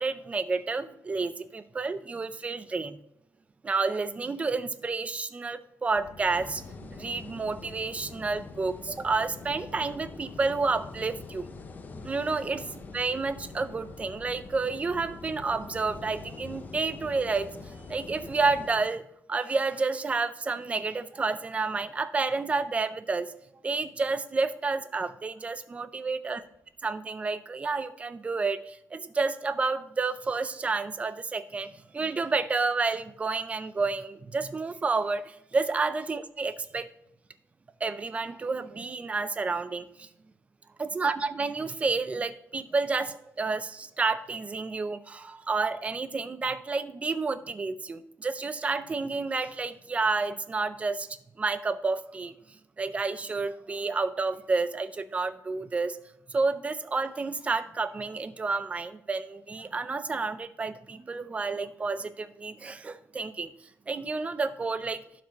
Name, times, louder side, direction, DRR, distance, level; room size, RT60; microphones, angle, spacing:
voice 1, 0.0-3.0 3.6-11.5 11.9-19.0 19.3-23.3 23.6-26.4 26.8-36.9 37.8-40.1 40.8-51.1 51.4-56.0 56.3-63.5 63.9-65.0, right 4 dB, 25° right, 13 dB, 0.5 m, -30 dB
sound 1, 5.9-18.8, left 2 dB, 60° left, 2.4 m, -48 dB
sound 2, 6.3-18.7, left 4 dB, 30° left, 0.5 m, -46 dB
11.5 x 6.0 x 2.9 m, 0.80 s
wide cardioid pair, 165°, 6 cm